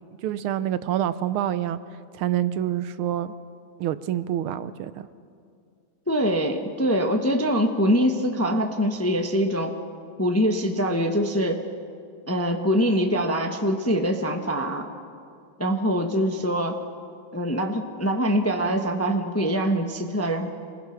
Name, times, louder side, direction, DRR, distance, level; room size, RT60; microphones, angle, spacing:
voice 1, 0.2-1.8 2.1-3.3 3.8-5.1, right 11 dB, 80° right, 13 dB, 1.6 m, -27 dB
voice 2, 6.1-9.8 10.2-11.7 12.3-14.9 15.6-16.8 17.3-20.5, equal, 10° left, 4 dB, 0.7 m, -24 dB
27.0 x 20.5 x 5.9 m, 2.3 s
omnidirectional pair, 2.3 m